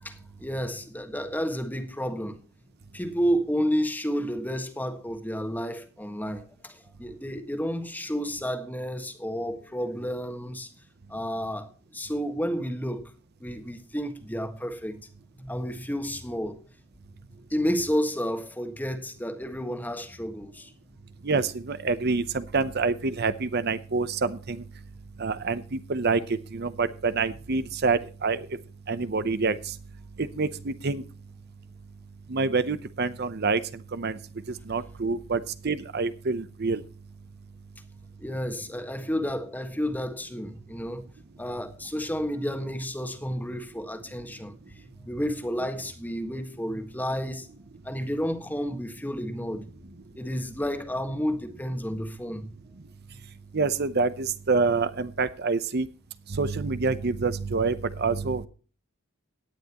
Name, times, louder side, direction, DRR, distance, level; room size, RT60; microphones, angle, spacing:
voice 1, 0.0-2.4 2.9-10.7 11.1-13.0 13.4-15.0 15.4-16.6 17.5-20.7 38.2-41.0 41.4-44.5 45.0-47.5 47.8-49.6 50.1-52.5, equal, 10° left, 1.5 m, -31 dB
voice 2, 21.2-24.6 25.2-28.5 28.9-29.7 30.2-31.0 32.3-33.6 33.9-34.2 34.5-36.8 53.5-55.9 56.3-58.5, right 4 dB, 50° right, 0.7 m, -27 dB
17.5 x 10.5 x 3.0 m
head